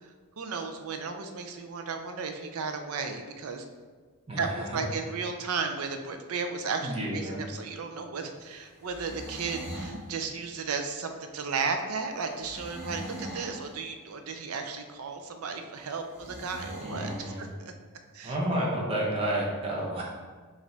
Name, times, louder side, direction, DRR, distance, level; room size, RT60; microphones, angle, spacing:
voice 1, 0.0-3.6 4.4-17.7 18.1-18.3, right 5 dB, 80° right, 5 dB, 0.5 m, -34 dB
voice 2, 4.3-4.8 6.8-7.5 16.8-17.5 18.2-20.0, right 1 dB, 25° right, -3 dB, 0.8 m, -31 dB
sound 1, 8.8-10.0 12.4-13.6 16.1-17.2, right 1 dB, 10° right, 1.4 m, -40 dB
5.0 x 2.5 x 3.3 m, 1.5 s
head